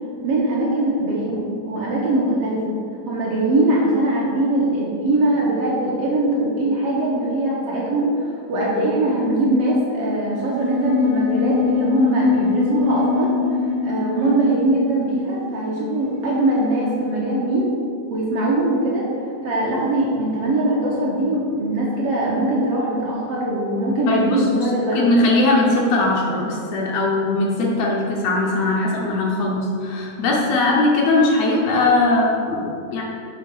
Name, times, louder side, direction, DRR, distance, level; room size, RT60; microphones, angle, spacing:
voice 1, 0.2-2.7 3.1-8.2 8.5-13.3 13.8-17.7 18.1-19.0 19.4-25.0, right 1 dB, 70° right, -5 dB, 1.6 m, -21 dB
sound 1, 10.4-16.4, left 4 dB, 85° right, 2.0 m, -23 dB
voice 2, 24.1-33.0, left 2 dB, 70° left, -2 dB, 1.8 m, -20 dB
6.3 x 3.7 x 5.9 m, 2.5 s
omnidirectional pair, 3.4 m